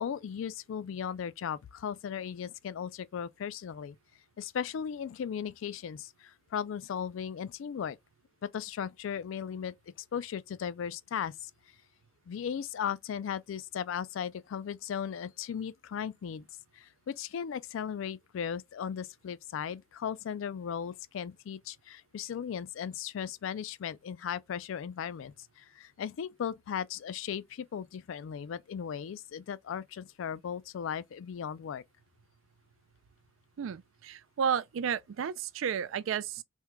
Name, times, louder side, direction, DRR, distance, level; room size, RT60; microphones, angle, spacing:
voice 1, 0.0-4.0 4.4-8.0 8.4-9.7 10.1-11.5 12.3-16.4 16.7-31.8, left 8 dB, 80° left, 0.3 m, -37 dB
voice 2, 33.6-36.4, right 7 dB, 85° right, 0.4 m, -32 dB
3.5 x 2.2 x 2.9 m
head